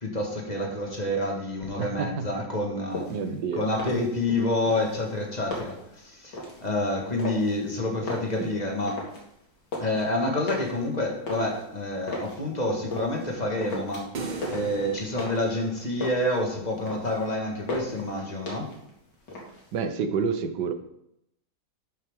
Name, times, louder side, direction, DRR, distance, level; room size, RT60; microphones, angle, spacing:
voice 1, 0.0-3.1 3.5-9.0 9.8-18.7, left 1 dB, 25° left, 0 dB, 1.7 m, -28 dB
voice 2, 1.8-2.3 3.1-3.6 8.4-8.5 19.7-20.7, right 5 dB, 75° right, 9 dB, 1.4 m, -29 dB
sound 1, 2.9-3.3 3.7-4.4 4.7-5.9 6.3-6.7 7.2-7.7 8.0-9.3 9.5-10.0 10.5-12.4 12.9-13.3 13.6-14.2 14.4-15.6 15.8-16.4 16.7-17.3 17.7-18.1 18.5-18.9 19.2-19.8, left 1 dB, 75° left, 2.7 m, -36 dB
sound 2, 14.1-16.5, right 4 dB, 55° right, 0.5 m, -38 dB
11.5 x 5.7 x 3.6 m, 0.78 s
omnidirectional pair, 1.9 m